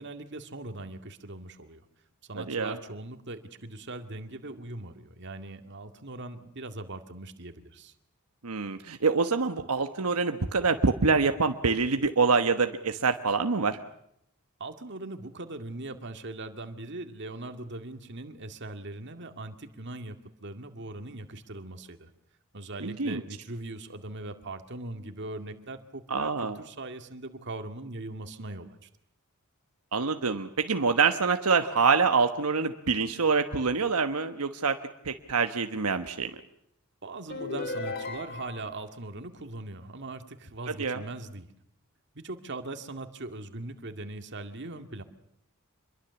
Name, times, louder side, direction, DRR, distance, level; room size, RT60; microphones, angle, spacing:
voice 1, 0.0-1.8 2.2-7.9 14.6-22.1 22.5-28.9 37.0-41.5 42.1-45.0, right 2 dB, 55° right, 7 dB, 2.1 m, -40 dB
voice 2, 8.4-13.8 22.8-23.2 26.1-26.6 29.9-34.8 35.0-36.3 40.8-41.0, right 4 dB, 85° right, 7 dB, 1.2 m, -26 dB
sound 1, 37.3-38.8, left 3 dB, 45° left, 2.6 m, -36 dB
26.5 x 22.5 x 7.0 m, 0.75 s
head